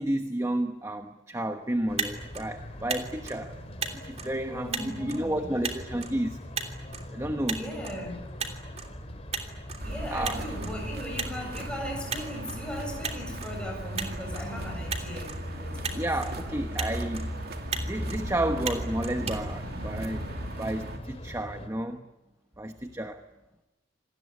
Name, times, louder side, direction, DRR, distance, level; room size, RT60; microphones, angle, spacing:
voice 1, 0.0-3.6 3.9-6.4 7.1-7.6 10.1-10.5 15.9-17.4 17.8-20.3 20.6-22.1 22.6-23.2, right 1 dB, 15° right, 7 dB, 1.1 m, -31 dB
Motor vehicle (road), 1.7-20.3, right 5 dB, 35° right, 3.0 m, -39 dB
sound 1, 1.9-21.7, equal, 30° left, 3.2 m, -40 dB
voice 2, 4.5-5.5 7.6-8.2 9.8-16.1 16.4-16.6, equal, 5° left, 0 dB, 7.5 m, -38 dB
sound 2, 9.8-21.0, right 1 dB, 50° right, 2.6 m, -39 dB
27.5 x 19.5 x 9.9 m, 1.0 s
head